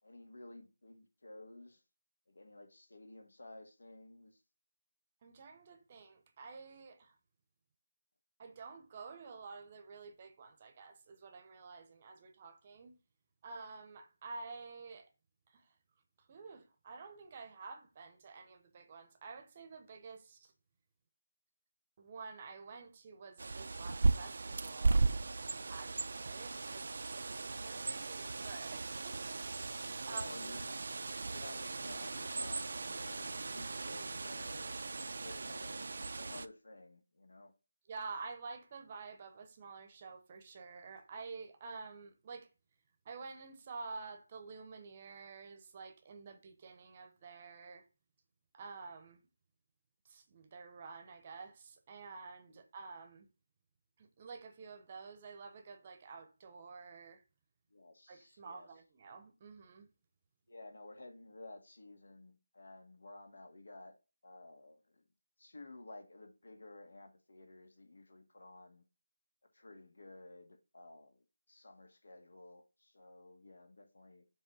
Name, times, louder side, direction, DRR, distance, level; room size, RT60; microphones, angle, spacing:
voice 1, 0.0-1.8 2.3-4.4 30.0-30.8 31.3-35.9 36.2-37.5 52.5-52.6 57.7-58.7 60.5-63.9 64.2-65.0 65.4-68.8 69.5-74.3, left 2 dB, 80° left, 1.8 m, -54 dB
voice 2, 5.2-7.2 8.4-13.0 13.4-15.1 15.5-15.8 16.2-20.5 22.0-25.1 25.7-27.1 27.4-30.2 37.9-42.5 43.0-47.9 48.5-49.2 50.0-53.3 54.0-57.2 58.1-59.9, right 4 dB, 25° right, 0.8 m, -50 dB
Bird, 23.4-36.5, right 3 dB, 55° right, 0.4 m, -37 dB
7.2 x 3.1 x 6.0 m
figure-of-eight pair, 170°, 0 cm